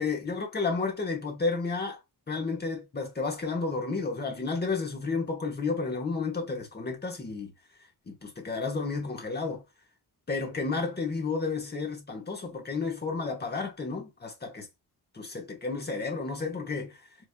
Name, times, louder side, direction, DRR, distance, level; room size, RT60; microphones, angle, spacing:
voice 1, 0.0-2.0 2.3-7.5 8.1-9.6 10.3-14.7 15.1-17.1, left 4 dB, 25° left, 1.1 m, -32 dB
4.8 x 2.7 x 2.2 m
wide cardioid pair, 125°, 39 cm